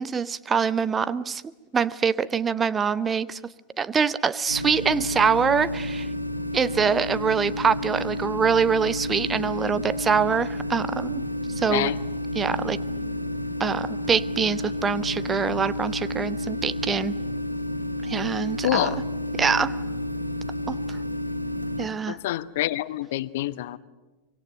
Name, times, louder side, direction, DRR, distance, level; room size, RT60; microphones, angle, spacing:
voice 1, 0.0-1.4 1.7-3.5 3.8-6.1 6.5-11.3 11.6-11.9 12.3-12.8 13.6-17.2 18.0-19.0 19.3-19.8 20.7-21.0 21.8-22.2, right 6 dB, 20° right, 0.8 m, -24 dB
sound 1, 4.5-21.9, left 1 dB, 90° left, 1.6 m, -30 dB
voice 2, 18.6-19.0 22.1-23.8, left 14 dB, 55° left, 0.9 m, -26 dB
24.5 x 23.5 x 9.1 m
figure-of-eight pair, 90°, 0 cm